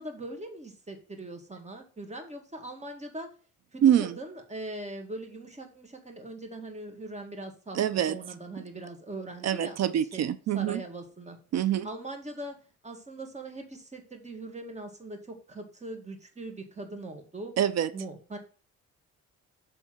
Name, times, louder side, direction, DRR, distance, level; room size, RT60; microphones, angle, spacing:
voice 1, 0.0-3.3 3.7-7.8 8.1-9.8 10.1-11.4 11.8-12.6 12.8-17.5 17.9-18.4, right 2 dB, 25° right, 4 dB, 1.9 m, -41 dB
voice 2, 3.8-4.1 7.7-8.2 9.4-10.8 11.5-11.9 17.6-17.9, right 10 dB, 60° right, 14 dB, 0.6 m, -25 dB
7.2 x 3.4 x 6.0 m, 0.38 s
cardioid pair, 90°, 30 cm